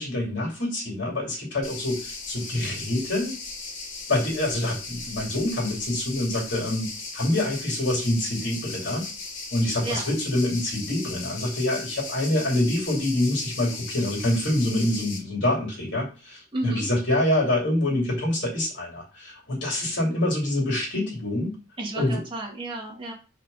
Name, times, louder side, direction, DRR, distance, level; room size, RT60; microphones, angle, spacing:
voice 1, 0.0-3.3 4.1-9.0 9.5-21.5 21.9-22.2, left 1 dB, 65° left, -2 dB, 3.3 m, -26 dB
sound 1, 1.6-15.2, left 3 dB, 90° left, 2.0 m, -37 dB
voice 2, 9.8-10.1 16.5-16.9 21.8-23.1, right 2 dB, 25° right, -2 dB, 2.1 m, -31 dB
5.0 x 4.4 x 5.7 m, 0.32 s
head